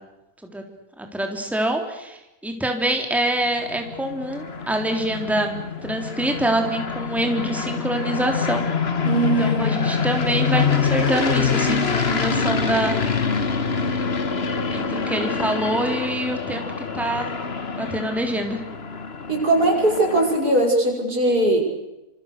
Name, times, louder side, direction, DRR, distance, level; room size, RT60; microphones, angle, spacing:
voice 1, 1.0-5.5 5.8-8.6 9.2-12.9 14.7-17.3 17.8-18.6, right 1 dB, ahead, 4 dB, 3.4 m, -25 dB
sound 1, 3.5-20.6, left 5 dB, 40° left, 1.7 m, -25 dB
voice 2, 9.0-9.9 19.3-21.7, right 2 dB, 75° right, 1 dB, 7.2 m, -20 dB
28.0 x 27.0 x 6.8 m, 0.96 s
omnidirectional pair, 1.6 m